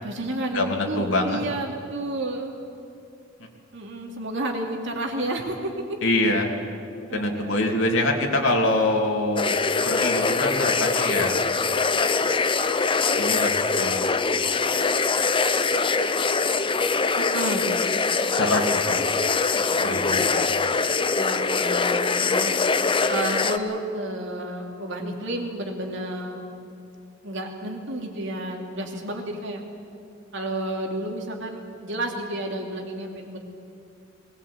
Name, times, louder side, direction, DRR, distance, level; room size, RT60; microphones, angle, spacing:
voice 1, 0.0-2.6 3.7-6.0 7.1-7.6 17.2-17.7 19.8-20.1 21.2-22.5 23.1-26.4 27.2-29.6 30.3-33.4, right 1 dB, 65° right, 2 dB, 2.8 m, -31 dB
voice 2, 0.5-1.4 6.0-6.5 7.1-11.4 13.2-14.1 14.6-14.7 18.4-19.1 19.8-20.4, left 2 dB, 90° left, 1 dB, 2.7 m, -25 dB
sound 1, 9.4-23.6, left 4 dB, 25° left, 0.7 m, -23 dB
20.0 x 18.5 x 8.5 m, 2.5 s
head